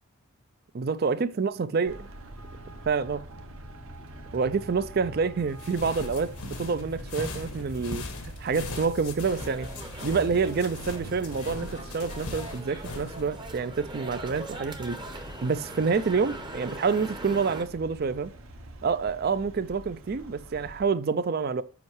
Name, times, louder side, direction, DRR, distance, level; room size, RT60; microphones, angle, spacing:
voice 1, 0.7-2.1 2.9-3.2 4.3-9.7 10.0-15.0 15.4-18.3 18.8-21.6, right 5 dB, 45° right, 0.4 m, -27 dB
Traffic noise roadway noise, 1.9-20.8, right 1 dB, 65° right, 1.0 m, -44 dB
sound 1, 5.5-13.2, left 3 dB, 85° left, 1.4 m, -40 dB
sound 2, 9.3-17.6, right 1 dB, 20° right, 0.8 m, -41 dB
7.1 x 5.4 x 3.1 m
head